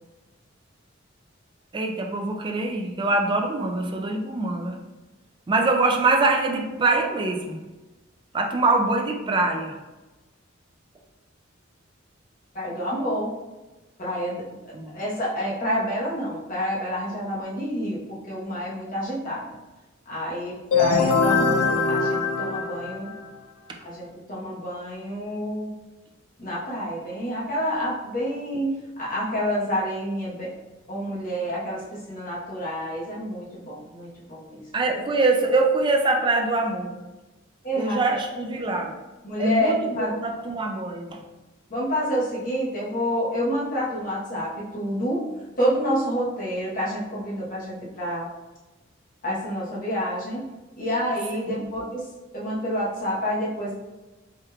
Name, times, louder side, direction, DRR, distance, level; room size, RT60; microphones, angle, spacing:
voice 1, 1.7-4.8 5.5-7.6 8.3-9.8 14.7-15.0 21.0-21.1 34.7-37.0 37.8-39.0 39.4-41.2 51.5-51.6, right 3 dB, 25° right, 2 dB, 0.3 m, -24 dB
voice 2, 12.5-13.3 14.0-14.6 14.9-19.5 20.1-23.1 23.8-25.7 26.4-30.5 30.9-34.6 37.6-38.0 39.2-40.1 41.7-45.3 45.6-48.3 49.2-50.4 50.8-52.1 52.3-53.7, equal, 40° left, -5 dB, 0.9 m, -28 dB
sound 1, 20.7-23.4, left 4 dB, 85° left, 0.4 m, -22 dB
3.6 x 2.8 x 2.2 m, 1.1 s
head